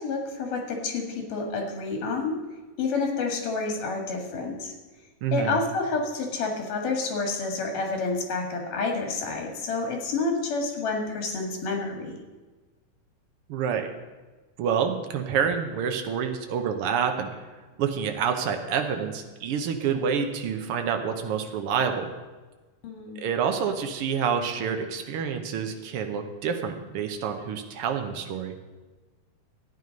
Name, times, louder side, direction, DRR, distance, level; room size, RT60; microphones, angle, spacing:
voice 1, 0.0-2.4 2.8-4.7 5.3-12.2 22.8-23.3, left 3 dB, 85° left, 2 dB, 3.5 m, -29 dB
voice 2, 5.2-5.6 13.5-13.9 14.6-17.4 17.8-22.1 23.2-28.5, right 7 dB, 75° right, 5 dB, 1.3 m, -28 dB
13.0 x 9.4 x 5.3 m, 1.3 s
omnidirectional pair, 3.7 m